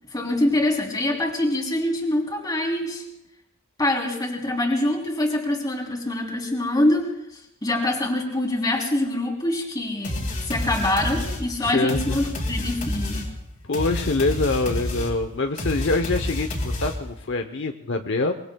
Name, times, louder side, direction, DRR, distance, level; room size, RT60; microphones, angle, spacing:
voice 1, 0.1-3.0 3.8-13.3, left 1 dB, 20° left, 0 dB, 3.2 m, -25 dB
sound 1, 10.0-17.2, left 1 dB, 40° left, 3.3 m, -29 dB
voice 2, 11.6-12.2 13.6-18.3, left 3 dB, 60° left, 6 dB, 0.8 m, -25 dB
24.0 x 23.0 x 2.3 m, 0.81 s
head